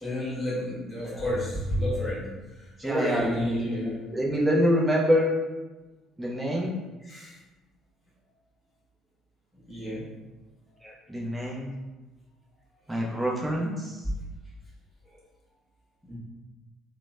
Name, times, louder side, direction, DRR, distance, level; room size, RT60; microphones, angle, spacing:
voice 1, 0.0-2.3 2.6-4.0 7.0-7.3 9.7-10.1 16.0-16.2, left 1 dB, 15° left, -8 dB, 1.0 m, -31 dB
voice 2, 2.8-5.3 6.2-6.7 10.8-11.7 12.9-14.0, equal, 10° right, -3 dB, 0.7 m, -26 dB
2.9 x 2.0 x 2.3 m, 1.1 s
figure-of-eight pair, 50°, 0 cm